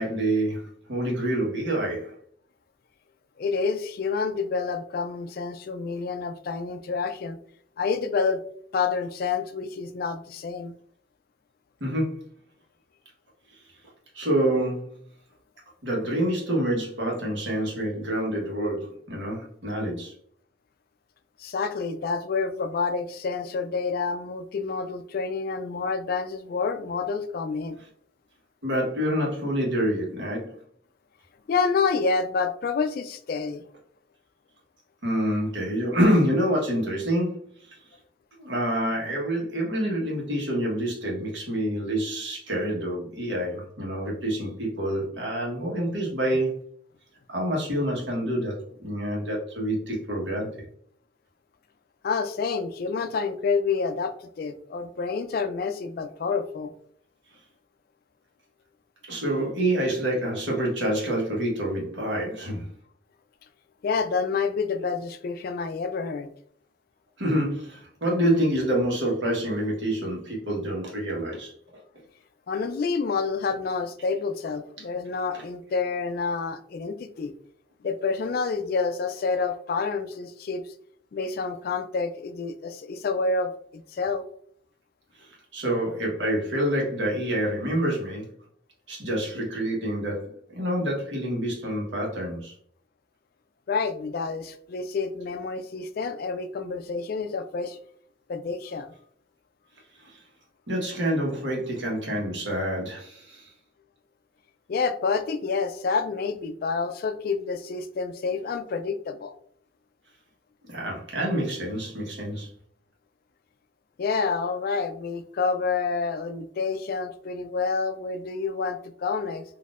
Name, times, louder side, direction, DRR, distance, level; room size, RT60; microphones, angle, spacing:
voice 1, 0.0-2.1 11.8-12.2 14.1-14.9 15.8-20.1 28.6-30.6 35.0-37.4 38.4-46.6 47.3-48.5 48.8-50.7 59.1-62.7 67.2-71.5 85.2-88.3 88.9-92.5 100.0-100.2 100.7-103.5 110.7-112.5, right 1 dB, 75° right, -2 dB, 1.2 m, -27 dB
voice 2, 3.4-7.4 7.8-8.4 8.7-10.7 21.4-27.8 31.5-33.6 52.0-56.7 63.8-66.3 72.5-77.3 77.8-80.6 81.1-84.2 93.7-97.8 98.3-98.9 104.7-109.3 114.0-119.4, left 4 dB, 50° left, 9 dB, 0.3 m, -28 dB
4.0 x 2.6 x 2.4 m, 0.62 s
head